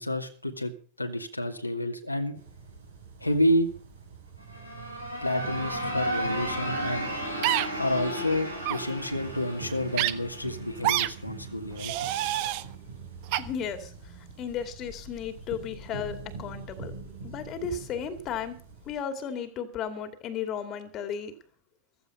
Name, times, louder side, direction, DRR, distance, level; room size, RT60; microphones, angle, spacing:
voice 1, 0.0-2.4 3.2-3.7 5.2-7.1 7.8-11.9, left 1 dB, 90° left, 3 dB, 2.3 m, -29 dB
sound 1, 2.3-18.9, right 4 dB, 70° right, 5.3 m, -44 dB
sound 2, 4.4-11.2, equal, 90° right, 5.1 m, -34 dB
sound 3, 7.4-7.7 8.6-8.8 10.0-10.1 10.8-11.1 11.8-12.6 13.3-13.4, right 14 dB, 45° right, 1.1 m, -26 dB
voice 2, 13.4-16.9 17.2-18.6 18.8-21.3, left 7 dB, 35° left, 9 dB, 2.5 m, -34 dB
15.5 x 14.5 x 5.6 m, 0.43 s
figure-of-eight pair, 90°, 0 cm